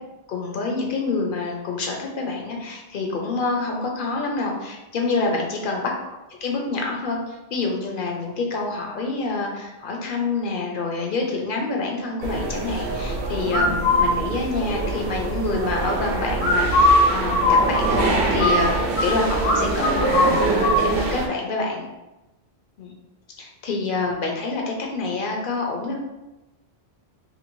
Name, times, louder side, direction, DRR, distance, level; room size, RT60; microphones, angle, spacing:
voice 1, 0.3-5.9 6.4-21.9 22.8-22.9 23.4-26.0, left 3 dB, 60° left, 0 dB, 0.7 m, -27 dB
sound 1, 12.2-21.3, right 3 dB, 65° right, 0.7 m, -25 dB
sound 2, 13.5-14.1 16.4-19.1 19.4-19.6 19.8-20.8, left 2 dB, 85° left, 1.1 m, -19 dB
2.7 x 2.6 x 2.9 m, 1.0 s
omnidirectional pair, 1.1 m